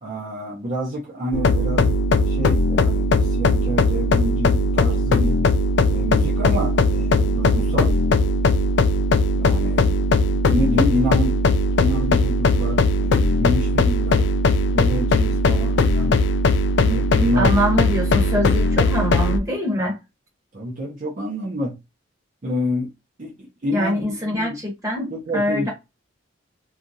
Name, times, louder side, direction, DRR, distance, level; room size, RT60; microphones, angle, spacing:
voice 1, 0.0-2.0 2.2-5.4 5.9-8.0 9.4-10.1 10.5-11.4 11.8-14.3 14.7-16.2 16.8-17.5 20.5-21.7 22.4-22.9 23.2-24.6 25.1-25.7, equal, 40° right, 0.6 m, -27 dB
sound 1, 1.3-19.4, left 2 dB, 60° left, 0.3 m, -19 dB
voice 2, 17.4-20.0 23.7-25.7, equal, 15° right, 0.9 m, -24 dB
2.8 x 2.4 x 2.6 m
head